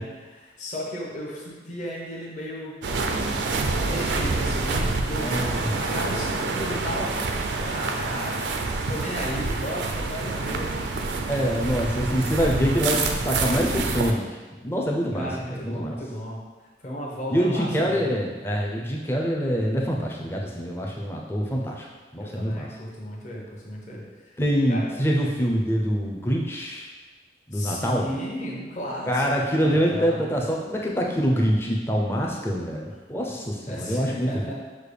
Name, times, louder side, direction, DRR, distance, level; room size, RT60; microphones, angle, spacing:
voice 1, 0.0-2.8 3.1-3.4 3.8-11.6 15.1-16.4 16.8-18.2 22.2-24.0 24.7-24.8 27.5-30.3 33.7-34.5, equal, 40° left, -4 dB, 0.8 m, -35 dB
sound 1, 2.8-14.1, right 3 dB, 75° right, 0.4 m, -27 dB
voice 2, 5.2-5.7 11.3-14.2 14.6-16.0 17.3-21.9 22.1-22.7 24.4-26.9 27.5-28.1 29.1-34.3, equal, 15° left, -1 dB, 0.4 m, -25 dB
6.4 x 2.2 x 3.3 m, 1.3 s
head